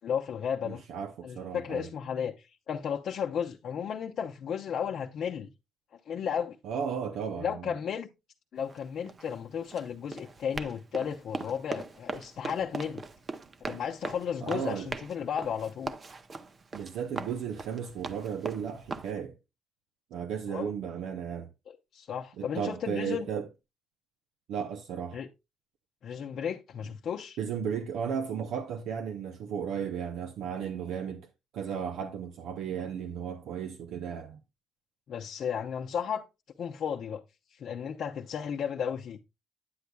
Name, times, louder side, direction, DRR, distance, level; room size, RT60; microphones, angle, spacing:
voice 1, 0.0-0.8 1.2-5.5 6.1-6.6 7.4-8.1 8.5-13.0 13.7-15.9 20.5-20.7 21.7-23.3 25.1-25.3 26.0-27.4 35.1-36.3 36.6-37.2 37.5-39.2, left 7 dB, 65° left, 0.6 m, -34 dB
voice 2, 0.6-1.9 6.6-7.7 14.4-14.9 16.7-19.4 20.1-21.5 22.4-23.5 24.5-25.2 27.4-31.3 31.5-34.4, right 7 dB, 85° right, 0.6 m, -34 dB
Run, 8.6-19.1, right 4 dB, 40° right, 0.7 m, -40 dB
9.5 x 8.0 x 2.3 m
cardioid pair, 90°, 0 cm